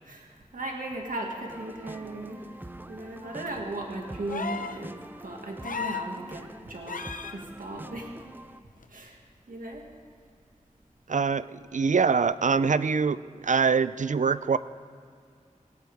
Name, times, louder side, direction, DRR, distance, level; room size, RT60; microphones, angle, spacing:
voice 1, 0.1-2.5 2.9-7.0 7.3-8.2 8.9-9.2 9.5-9.8, right 2 dB, 85° right, 1 dB, 2.0 m, -37 dB
sound 1, 1.5-8.6, right 1 dB, 15° right, 0.5 m, -45 dB
sound 2, 4.3-4.8 5.6-6.1 6.9-7.4 8.8-8.9, left 5 dB, 85° left, 0.8 m, -34 dB
voice 2, 11.1-14.6, right 5 dB, 65° right, 16 dB, 0.4 m, -24 dB
19.5 x 17.5 x 3.5 m, 2.3 s
wide cardioid pair, 65°, 14 cm